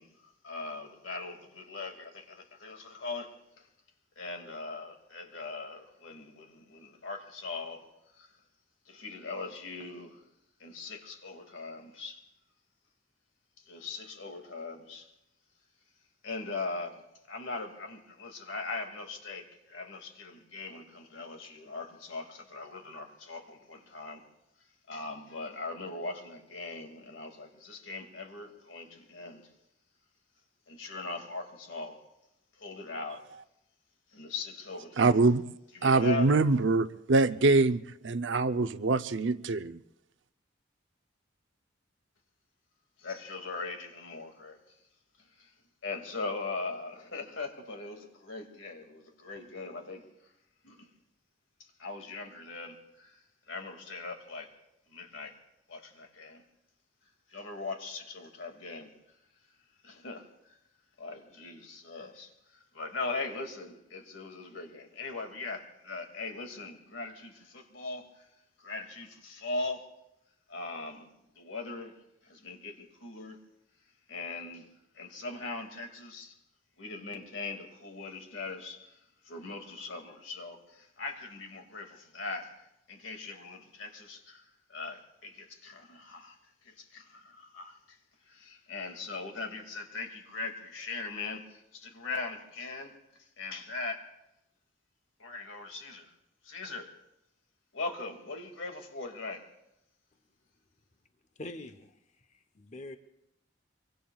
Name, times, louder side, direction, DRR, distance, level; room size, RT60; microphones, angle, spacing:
voice 1, 0.0-3.7 4.2-7.9 8.1-8.4 8.9-10.2 10.6-12.2 13.6-15.1 16.2-17.0 17.3-24.3 24.9-29.5 30.7-32.0 32.6-33.3 34.1-35.2 35.7-36.3 43.0-44.7 45.2-45.5 45.8-50.1 50.6-50.9 51.6-54.5 54.9-55.4 55.7-56.4 57.3-58.9 59.8-60.6 61.0-68.3 68.6-69.9 70.5-71.1 71.3-73.4 74.1-74.7 74.9-76.4 76.8-79.0 79.2-88.0 88.3-94.1 95.2-96.1 96.4-96.9 97.7-99.5, left 3 dB, 75° left, 4 dB, 2.3 m, -40 dB
voice 2, 35.0-35.5 35.8-39.8, right 3 dB, 65° right, 11 dB, 0.7 m, -24 dB
voice 3, 101.4-101.9 102.3-103.0, left 2 dB, 35° left, 9 dB, 0.8 m, -44 dB
25.0 x 24.0 x 2.4 m, 0.85 s
head